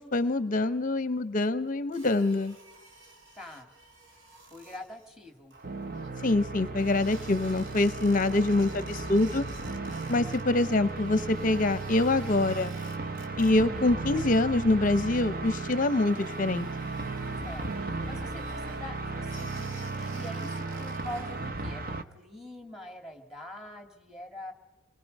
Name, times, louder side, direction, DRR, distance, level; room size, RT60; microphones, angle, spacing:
voice 1, 0.0-2.5 6.2-9.4 10.1-12.7 13.4-16.7, left 2 dB, 40° left, 14 dB, 0.7 m, -25 dB
sound 1, 1.9-6.3 6.8-10.4 10.7-13.8 14.1-14.6 14.9-15.0 15.4-21.5, right 2 dB, 70° right, 3.3 m, -53 dB
voice 2, 3.4-3.7 4.5-5.5 10.1-10.2 13.4-13.9 17.4-24.5, left 1 dB, 5° right, 5 dB, 2.4 m, -44 dB
sound 2, 5.6-22.0, right 3 dB, 45° right, 1.1 m, -35 dB
28.5 x 21.5 x 5.3 m, 1.1 s
head